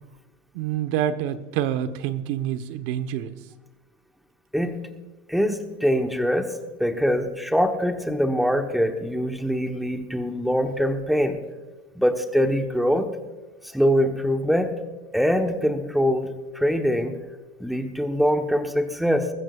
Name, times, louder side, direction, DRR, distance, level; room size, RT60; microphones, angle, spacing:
voice 1, 0.5-3.3, right 10 dB, 65° right, 10 dB, 1.3 m, -27 dB
voice 2, 5.3-11.4 11.9-13.1 13.6-14.7 15.1-17.2 17.6-19.3, equal, ahead, 5 dB, 1.1 m, -23 dB
21.0 x 15.0 x 2.4 m, 1.2 s
supercardioid pair, 140°, 32 cm